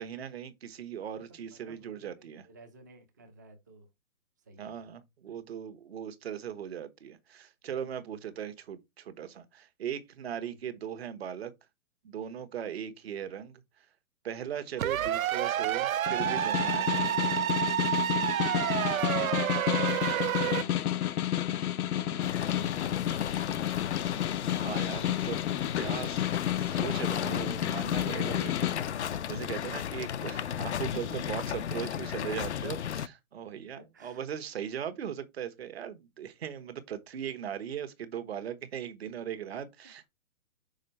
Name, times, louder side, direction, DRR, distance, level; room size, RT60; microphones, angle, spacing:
voice 1, 0.0-2.4 4.6-11.5 12.0-13.6 14.2-17.2 24.5-25.4 25.7-26.2 26.6-40.1, right 9 dB, 45° right, 1.3 m, -39 dB
voice 2, 1.0-3.9 4.5-4.9 20.3-21.2 21.7-23.6 30.9-31.4 31.7-31.9 33.8-34.2 39.8-40.1, right 1 dB, 15° right, 0.6 m, -52 dB
sound 1, 14.8-20.6, right 11 dB, 70° right, 0.6 m, -29 dB
Snare drum, 16.1-28.8, left 12 dB, 80° left, 0.8 m, -31 dB
sound 2, 22.2-33.1, left 9 dB, 50° left, 0.5 m, -35 dB
6.4 x 4.4 x 4.2 m
hypercardioid pair, 170°, 43 cm